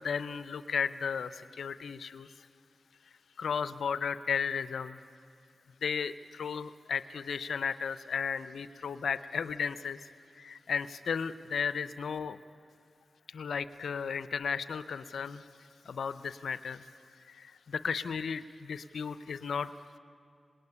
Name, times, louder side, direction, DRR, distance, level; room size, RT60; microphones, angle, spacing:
voice 1, 0.0-2.3 3.4-5.0 5.8-10.0 10.4-12.4 13.3-15.4 15.9-16.9 17.3-19.7, left 6 dB, 85° left, 13 dB, 0.6 m, -34 dB
25.5 x 20.0 x 9.8 m, 2.4 s
cardioid pair, 40°, 0 cm